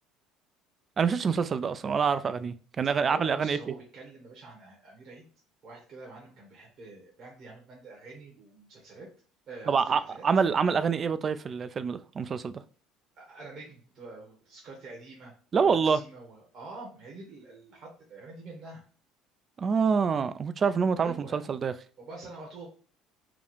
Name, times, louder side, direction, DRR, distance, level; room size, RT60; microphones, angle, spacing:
voice 1, 1.0-3.6 9.7-12.6 15.5-16.0 19.6-21.7, right 6 dB, 40° right, 0.4 m, -26 dB
voice 2, 3.0-5.3 5.6-9.1 9.5-10.2 13.1-18.8 20.9-21.6 22.0-22.7, right 3 dB, 55° right, 1.5 m, -46 dB
4.8 x 2.4 x 3.5 m
hypercardioid pair, 65°, 0 cm